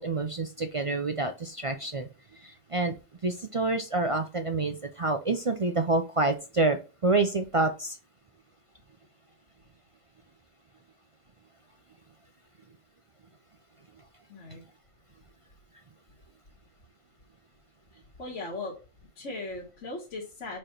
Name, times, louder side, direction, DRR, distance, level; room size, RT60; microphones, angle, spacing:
voice 1, 0.0-2.9 3.2-8.0, right 3 dB, 50° right, 7 dB, 0.4 m, -28 dB
voice 2, 14.3-14.6 18.2-18.7 19.2-20.6, left 2 dB, 60° left, -4 dB, 2.0 m, -38 dB
5.0 x 4.3 x 5.7 m, 0.32 s
omnidirectional pair, 1.4 m